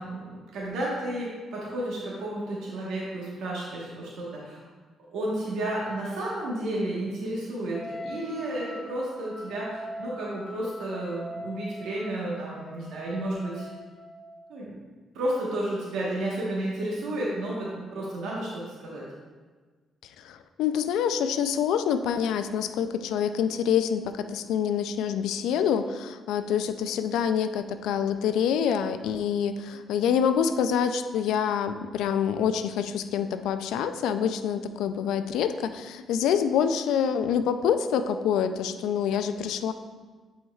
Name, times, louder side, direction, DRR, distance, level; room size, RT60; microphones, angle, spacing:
voice 1, 0.0-4.6 5.1-13.7 14.5-14.8 15.1-19.0, right 1 dB, 85° right, -5 dB, 1.3 m, -32 dB
Wind instrument woodwind instrument, 7.7-14.3, left 1 dB, 10° left, 1.0 m, -42 dB
voice 2, 20.2-39.7, left 8 dB, 85° left, 10 dB, 0.3 m, -26 dB
8.9 x 4.4 x 2.4 m, 1.4 s
cardioid pair, 90°, 0 cm